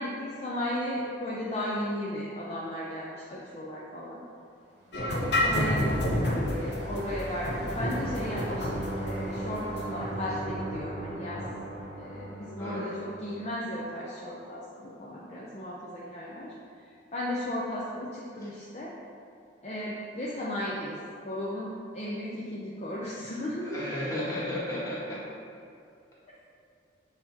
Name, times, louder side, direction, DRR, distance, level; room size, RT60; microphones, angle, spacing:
voice 1, 0.0-4.2 4.9-11.4 12.0-16.5 17.1-18.9 19.6-20.9 21.3-24.0, left 1 dB, 35° left, -6 dB, 0.6 m, -35 dB
sound 1, 4.9-11.7, left 1 dB, 60° left, 0.9 m, -30 dB
sound 2, 5.0-13.7, right 1 dB, 60° right, 1.0 m, -38 dB
voice 2, 12.6-12.9 23.6-25.2, left 1 dB, 15° left, -9 dB, 1.4 m, -33 dB
7.6 x 2.8 x 4.4 m, 2.5 s
head